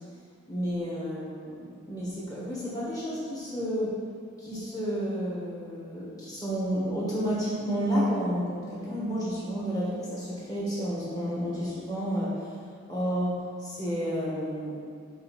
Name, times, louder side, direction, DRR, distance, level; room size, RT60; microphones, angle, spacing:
voice 1, 0.5-4.0 4.4-12.5 12.9-14.8, equal, 20° left, -7 dB, 1.8 m, -31 dB
6.7 x 3.6 x 6.1 m, 2.1 s
head